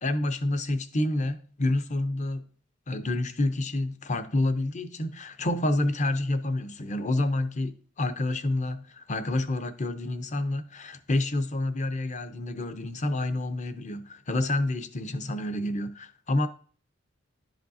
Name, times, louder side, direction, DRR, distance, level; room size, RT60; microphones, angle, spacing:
voice 1, 0.0-2.5 2.9-16.5, left 2 dB, 35° left, 0.7 m, -28 dB
11.5 x 5.1 x 2.7 m
head